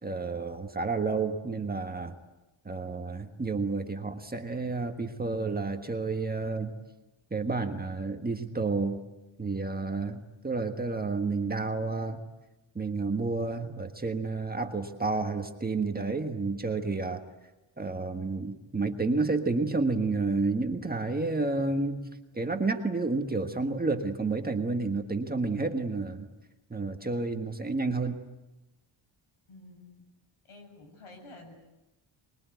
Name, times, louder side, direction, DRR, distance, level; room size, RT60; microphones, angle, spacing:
voice 1, 0.0-2.1 2.6-6.7 7.3-9.0 9.4-12.2 12.7-17.2 17.8-22.1 22.3-26.3 26.7-28.2, right 3 dB, 20° right, 5 dB, 1.5 m, -30 dB
voice 2, 29.5-30.1 30.4-31.5, left 2 dB, 85° left, 4 dB, 7.6 m, -50 dB
25.0 x 22.0 x 9.4 m, 1.0 s
wide cardioid pair, 175°, 50 cm